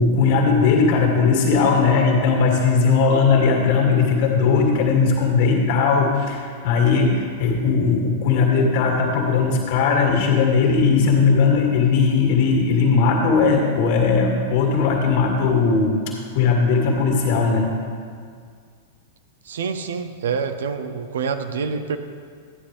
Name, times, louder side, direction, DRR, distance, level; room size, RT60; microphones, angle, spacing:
voice 1, 0.0-17.7, left 5 dB, 50° left, 1 dB, 2.1 m, -18 dB
voice 2, 19.4-22.0, right 5 dB, 65° right, 9 dB, 0.7 m, -26 dB
13.5 x 9.6 x 3.3 m, 2.1 s
figure-of-eight pair, 95°, 0 cm